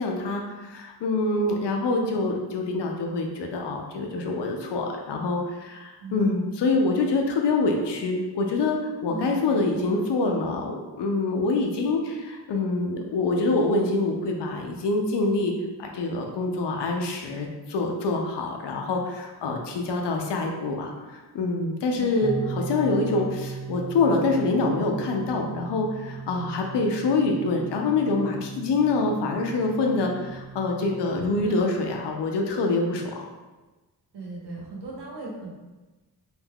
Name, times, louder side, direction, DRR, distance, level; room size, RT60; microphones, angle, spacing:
voice 1, 0.0-15.5 15.8-33.3, left 3 dB, 85° left, 2 dB, 0.6 m, -25 dB
voice 2, 6.0-6.3 9.1-10.0 21.9-22.1 31.3-31.7 34.1-35.5, right 2 dB, 80° right, -3 dB, 0.9 m, -37 dB
sound 1, 22.2-31.3, right 5 dB, 35° left, 0.5 m, -37 dB
2.4 x 2.2 x 3.4 m, 1.2 s
wide cardioid pair, 115°, 40 cm